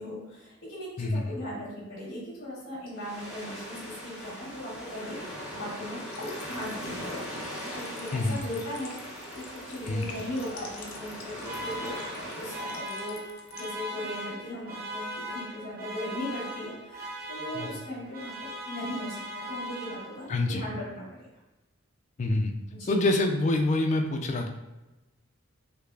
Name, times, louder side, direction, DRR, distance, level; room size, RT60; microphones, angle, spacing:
voice 1, 0.0-9.0 9.3-13.2 13.5-21.3 22.7-23.0, equal, 55° left, -10 dB, 1.1 m, -38 dB
voice 2, 1.0-1.4 8.1-8.4 9.8-10.1 17.5-17.7 20.3-20.6 22.2-22.5 22.9-24.5, left 2 dB, 35° left, 4 dB, 0.3 m, -26 dB
sound 1, 2.9-12.9, equal, 5° right, 0.8 m, -40 dB
sound 2, 6.1-13.7, left 4 dB, 85° left, 0.6 m, -48 dB
sound 3, 11.4-20.4, equal, 45° right, 0.6 m, -39 dB
3.4 x 3.1 x 2.3 m, 1.0 s
head